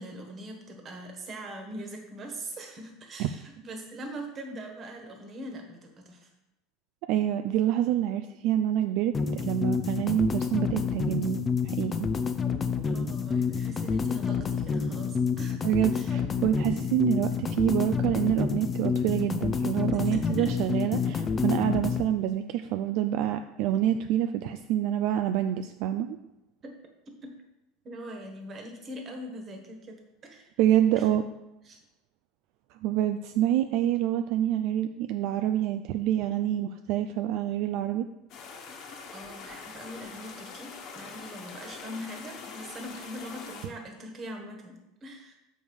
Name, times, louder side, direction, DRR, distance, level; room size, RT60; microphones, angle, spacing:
voice 1, 0.0-6.3 12.8-15.6 15.9-16.1 19.9-20.5 26.6-26.7 27.2-27.3 27.8-30.5 31.0-31.1 31.6-31.8 39.1-45.3, right 1 dB, 30° right, 3 dB, 1.5 m, -42 dB
voice 2, 7.1-12.1 15.6-26.2 30.6-31.2 32.8-38.0, right 11 dB, 60° right, 8 dB, 0.4 m, -27 dB
sound 1, 9.1-22.1, left 6 dB, 20° left, 0.5 m, -28 dB
sound 2, 38.3-43.7, left 5 dB, 50° left, 1.3 m, -44 dB
7.0 x 5.4 x 4.8 m, 0.94 s
supercardioid pair, 145°, 0 cm